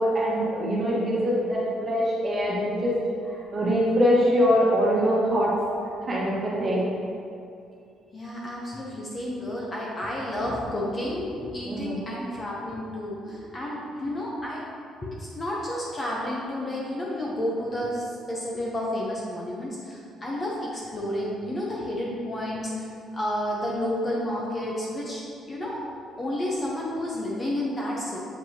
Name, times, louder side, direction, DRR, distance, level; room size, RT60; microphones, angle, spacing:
voice 1, 0.0-2.9 3.2-5.5 6.1-6.9 11.6-12.0, equal, 25° right, -6 dB, 1.4 m, -23 dB
voice 2, 8.1-14.6 15.0-22.9 23.1-25.8 26.2-28.3, left 1 dB, 20° left, -4 dB, 0.7 m, -31 dB
7.4 x 5.1 x 2.8 m, 2.5 s
cardioid pair, 170°, 0 cm